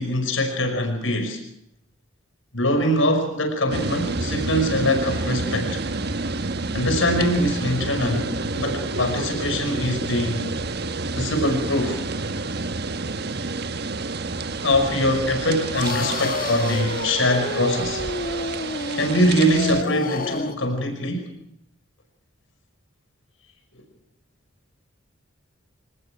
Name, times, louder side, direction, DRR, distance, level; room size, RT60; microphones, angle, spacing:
voice 1, 0.0-1.4 2.5-5.8 6.7-10.5 11.2-12.0 14.6-18.1 18.9-21.3, left 1 dB, 85° left, 5 dB, 5.4 m, -23 dB
sound 1, 3.7-19.8, right 3 dB, 55° right, 1.4 m, -29 dB
sound 2, 15.7-20.7, left 3 dB, 45° left, 1.4 m, -30 dB
26.0 x 19.5 x 6.0 m, 0.76 s
head